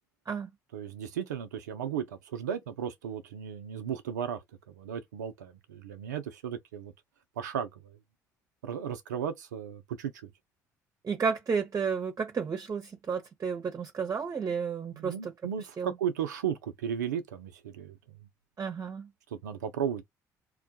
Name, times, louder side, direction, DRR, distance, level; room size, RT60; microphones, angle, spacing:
voice 1, 0.7-6.9 7.4-8.0 8.6-10.3 14.9-18.0 19.3-20.0, right 8 dB, 80° right, 0.5 m, -35 dB
voice 2, 11.0-15.3 15.8-16.0 18.6-19.1, right 6 dB, 35° right, 0.8 m, -32 dB
2.2 x 2.1 x 2.7 m
figure-of-eight pair, 50°, 9 cm